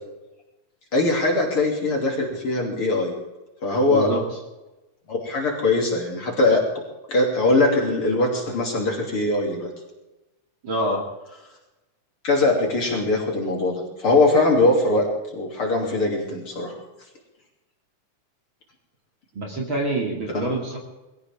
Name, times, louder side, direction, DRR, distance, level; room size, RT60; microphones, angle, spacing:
voice 1, 0.9-3.1 3.6-4.1 5.1-6.6 7.1-9.7 12.2-15.1 15.3-16.8 20.3-20.5, left 2 dB, 40° left, -1 dB, 3.6 m, -21 dB
voice 2, 3.9-4.4 10.6-11.0 19.3-20.8, right 1 dB, 40° right, 0 dB, 2.9 m, -26 dB
21.5 x 16.5 x 3.6 m, 1.0 s
omnidirectional pair, 3.7 m